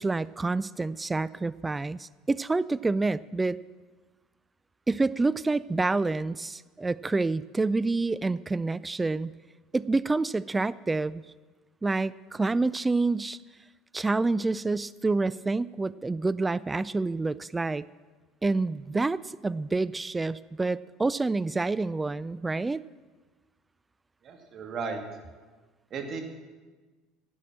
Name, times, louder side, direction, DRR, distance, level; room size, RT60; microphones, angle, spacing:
voice 1, 0.0-3.6 4.9-9.3 9.7-11.2 11.8-13.4 13.9-17.9 18.4-22.8, right 3 dB, 15° right, 18 dB, 0.3 m, -28 dB
voice 2, 24.2-25.0 25.9-26.2, right 5 dB, 45° right, 3 dB, 2.0 m, -35 dB
11.0 x 8.3 x 7.4 m, 1.3 s
hypercardioid pair, 75°, 0 cm